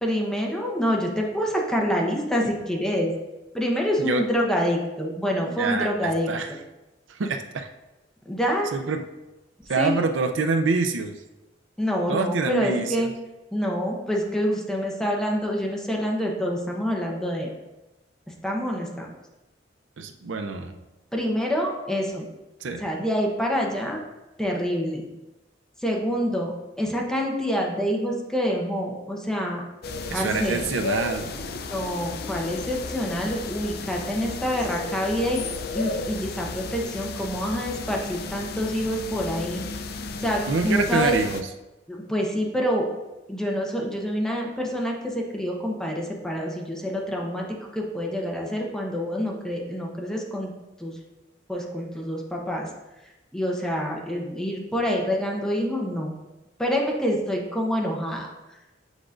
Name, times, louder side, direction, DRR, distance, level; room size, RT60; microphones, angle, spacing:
voice 1, 0.0-3.1 3.5-6.3 8.3-8.7 9.8-10.0 11.8-13.1 13.5-17.5 18.4-19.1 21.1-22.3 22.8-24.0 24.4-25.0 25.8-29.6 30.1-30.6 31.7-35.4 35.7-39.6 40.2-41.2 41.9-42.9 43.3-50.5 50.8-51.0 51.5-52.7 53.3-56.1 56.6-58.6, equal, 5° left, -1 dB, 0.9 m, -27 dB
voice 2, 5.6-6.5 7.1-7.7 8.7-9.0 9.7-11.1 12.1-13.1 20.0-20.7 22.6-22.9 30.1-31.5 40.5-41.4, right 4 dB, 90° right, 7 dB, 0.5 m, -26 dB
sound 1, 29.8-41.4, left 3 dB, 60° left, 0.5 m, -34 dB
8.1 x 4.9 x 2.5 m, 1.0 s
head